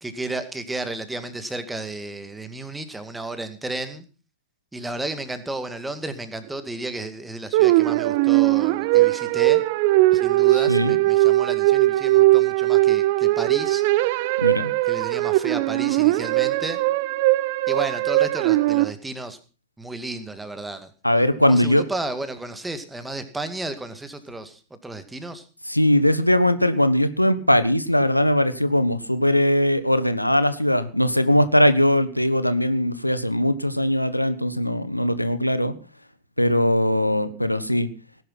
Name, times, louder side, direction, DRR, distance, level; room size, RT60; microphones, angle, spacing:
voice 1, 0.0-4.0 4.7-9.6 10.1-13.8 14.8-16.8 17.7-19.4 19.8-20.9 21.5-25.4, right 2 dB, 10° right, 10 dB, 2.2 m, -33 dB
sound 1, 7.5-18.9, right 18 dB, 50° right, 0.7 m, -19 dB
voice 2, 14.4-14.7 21.0-21.8 25.7-35.7 36.4-37.9, left 1 dB, 90° left, 13 dB, 1.3 m, -20 dB
18.5 x 11.0 x 5.8 m, 0.35 s
figure-of-eight pair, 90°, 0 cm